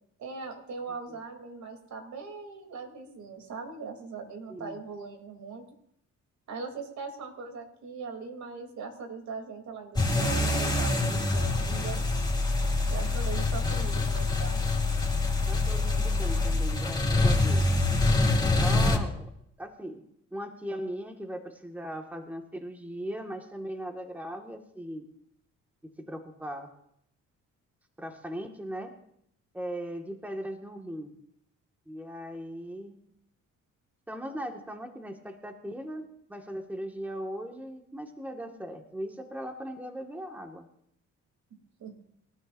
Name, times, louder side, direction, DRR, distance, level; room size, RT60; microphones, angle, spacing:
voice 1, 0.2-5.6 6.5-12.0 12.9-14.6 41.5-41.9, right 4 dB, 70° right, 4 dB, 3.3 m, -40 dB
sound 1, 10.0-19.0, left 2 dB, 15° left, 2.7 m, -25 dB
voice 2, 15.5-17.7 18.6-19.3 19.6-20.0 20.3-25.1 26.1-26.7 28.0-28.9 29.5-31.1 31.9-33.0 34.1-40.7, equal, 5° right, 3 dB, 1.9 m, -38 dB
27.0 x 12.5 x 2.7 m, 0.72 s
cardioid pair, 90°, 30 cm